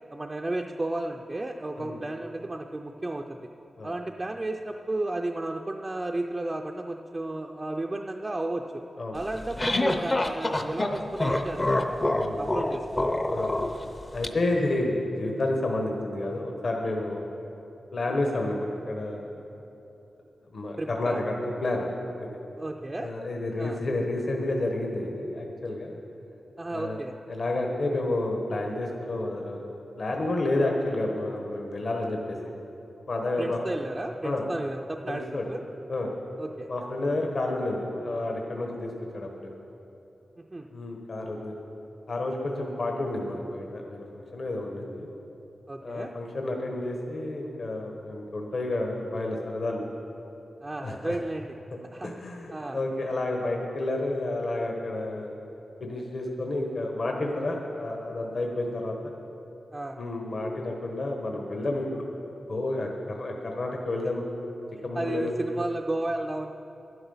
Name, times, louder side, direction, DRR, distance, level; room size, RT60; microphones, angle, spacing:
voice 1, 0.1-3.4 3.8-8.8 9.1-12.1 12.4-13.2 18.1-18.2 20.8-21.2 22.6-23.1 23.6-23.8 26.6-27.1 33.4-35.2 35.5-35.6 36.4-36.7 40.4-40.7 45.7-46.1 50.6-51.6 51.9-52.1 52.5-52.8 59.7-60.0 64.9-66.5, right 2 dB, 20° right, 2 dB, 0.4 m, -33 dB
sound 1, 9.2-14.3, left 1 dB, 25° left, 0.6 m, -27 dB
voice 2, 12.1-12.5 13.3-13.5 14.1-17.2 17.9-19.3 20.5-21.9 22.2-22.4 23.0-26.0 26.7-27.0 27.3-29.6 30.0-32.5 33.1-33.6 34.2-34.4 35.1-35.4 35.9-36.1 36.7-39.5 40.7-41.5 42.1-45.1 45.8-49.8 50.8-51.2 52.0-55.3 55.8-59.1 60.0-62.0 62.5-64.2 64.8-65.3, left 2 dB, 55° left, 1 dB, 1.1 m, -30 dB
12.0 x 11.0 x 5.5 m, 3.0 s
wide cardioid pair, 175°, 0 cm